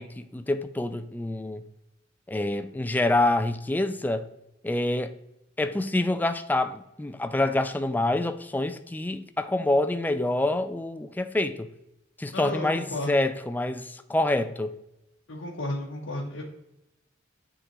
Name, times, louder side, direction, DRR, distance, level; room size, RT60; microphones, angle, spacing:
voice 1, 0.0-1.6 2.3-4.3 4.6-5.1 5.6-11.7 12.2-14.7, left 2 dB, 10° left, 0.3 m, -26 dB
voice 2, 12.3-13.2 15.3-16.4, left 1 dB, 75° left, 0.9 m, -33 dB
9.4 x 3.8 x 3.0 m
head